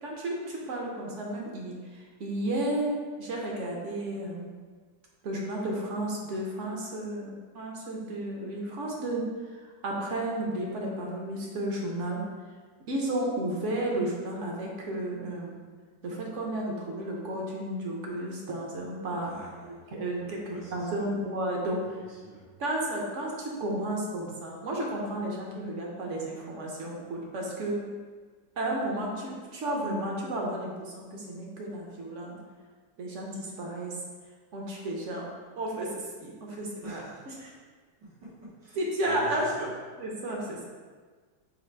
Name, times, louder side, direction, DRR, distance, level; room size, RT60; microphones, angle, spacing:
voice 1, 0.0-4.5 5.2-12.2 12.9-15.6 16.0-19.3 19.6-21.8 22.6-27.9 28.6-32.4 33.0-33.9 34.5-35.3 35.6-37.0 37.4-37.5 38.8-39.7 40.0-40.6, right 1 dB, 55° right, -2 dB, 0.9 m, -33 dB
voice 2, 19.2-21.3 21.8-22.4 36.8-37.3 38.0-39.7 40.3-40.7, right 1 dB, 90° right, -8 dB, 1.9 m, -47 dB
4.1 x 2.6 x 4.5 m, 1.5 s
omnidirectional pair, 1.9 m